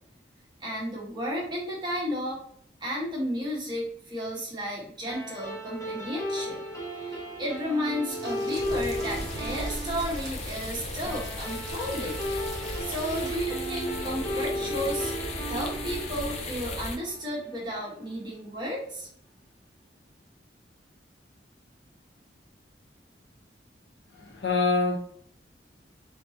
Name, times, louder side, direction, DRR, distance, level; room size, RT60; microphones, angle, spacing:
voice 1, 0.6-2.4 2.8-6.6 6.9-12.2 12.5-15.1 15.4-19.1, equal, 25° right, 1.5 m, -33 dB
sound 1, 5.1-17.8, equal, 20° left, 1.1 m, -35 dB
sound 2, 8.1-13.4, right 2 dB, 45° right, 1.8 m, -45 dB
sound 3, 8.6-17.0, left 2 dB, 35° left, 0.7 m, -36 dB
voice 2, 24.1-25.0, left 3 dB, 70° left, 1.0 m, -25 dB
4.0 x 3.6 x 2.9 m
head